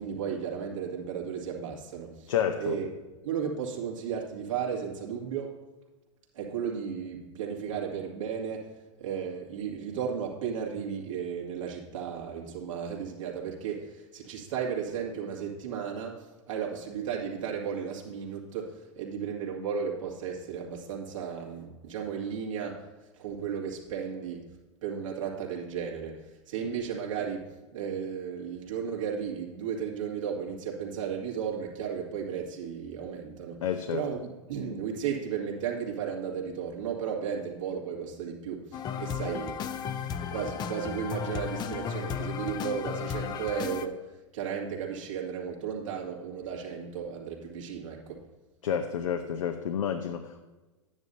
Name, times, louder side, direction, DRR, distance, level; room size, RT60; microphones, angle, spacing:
voice 1, 0.0-3.0 3.2-5.6 6.3-22.9 23.1-24.6 24.8-39.6 40.3-48.2, right 7 dB, 75° right, -2 dB, 2.2 m, -34 dB
voice 2, 2.3-2.8 33.6-34.0 48.6-50.4, left 8 dB, 75° left, 6 dB, 0.7 m, -30 dB
sound 1, 38.7-43.9, left 8 dB, 25° left, 0.5 m, -34 dB
11.0 x 9.5 x 2.7 m, 1.2 s
hypercardioid pair, 110°, 17 cm